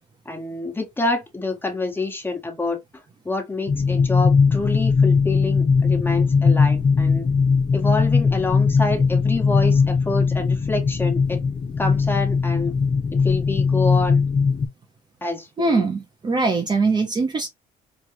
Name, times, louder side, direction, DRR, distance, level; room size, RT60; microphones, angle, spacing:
voice 1, 0.2-2.8 3.2-7.3 7.7-11.4 11.8-12.7 13.1-14.2 15.2-15.8, left 2 dB, 10° left, 1.4 m, -27 dB
sound 1, 3.7-14.7, left 5 dB, 35° left, 0.7 m, -19 dB
voice 2, 15.6-17.5, right 4 dB, 25° right, 0.6 m, -22 dB
4.4 x 2.4 x 2.9 m
cardioid pair, 110°, 17 cm